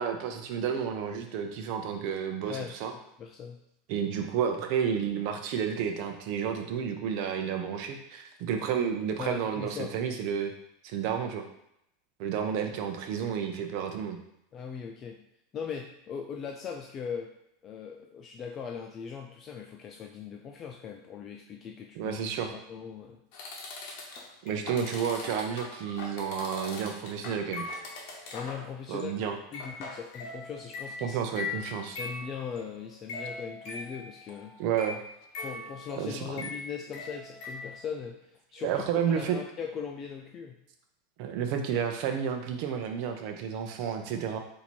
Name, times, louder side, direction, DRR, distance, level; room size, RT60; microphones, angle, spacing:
voice 1, 0.0-2.9 3.9-10.5 10.8-11.4 12.2-14.2 21.9-22.5 24.4-27.6 28.9-29.4 31.0-32.0 34.6-35.0 36.0-36.2 38.6-39.4 41.2-44.4, right 7 dB, 50° right, 4 dB, 0.6 m, -31 dB
voice 2, 3.2-3.6 9.2-9.9 14.5-15.3 15.5-17.3 17.6-22.2 22.5-23.2 28.3-31.2 32.0-34.6 35.4-38.8 39.2-40.6, left 7 dB, 25° left, 2 dB, 0.4 m, -39 dB
sound 1, 23.3-28.7 29.0-29.2 29.5-37.8, left 3 dB, 50° left, 1.0 m, -41 dB
4.3 x 2.7 x 4.4 m, 0.78 s
supercardioid pair, 155°, 0 cm